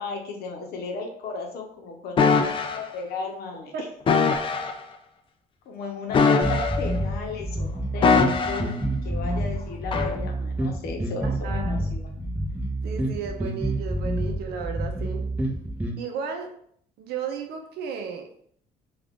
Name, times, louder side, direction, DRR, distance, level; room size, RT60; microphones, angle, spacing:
voice 1, 0.0-3.7 5.7-12.3, left 4 dB, 65° left, 2 dB, 0.8 m, -35 dB
sound 1, 2.2-2.8 4.1-4.7 6.1-7.0 8.0-8.8 9.9-10.1, left 5 dB, 30° left, 0.3 m, -21 dB
sound 2, 6.4-16.0, right 1 dB, 10° right, 0.6 m, -28 dB
voice 2, 11.2-11.9 12.8-15.3 16.0-16.5 17.0-18.3, right 6 dB, 70° right, 4 dB, 0.6 m, -34 dB
2.4 x 2.4 x 3.5 m, 0.64 s
cardioid pair, 110°, 17 cm